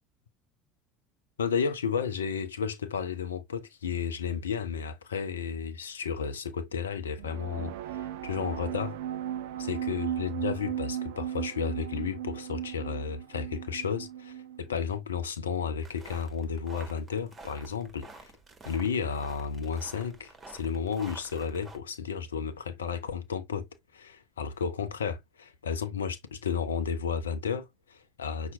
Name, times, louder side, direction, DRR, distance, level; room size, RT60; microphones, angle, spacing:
voice 1, 1.4-9.0 9.6-18.3 18.7-23.7 23.9-28.5, left 6 dB, 80° left, 0.6 m, -33 dB
sound 1, 7.2-14.7, right 11 dB, 65° right, 0.4 m, -36 dB
sound 2, 15.8-21.8, right 3 dB, 25° right, 1.6 m, -50 dB
5.8 x 2.6 x 3.4 m
figure-of-eight pair, 70°, 0 cm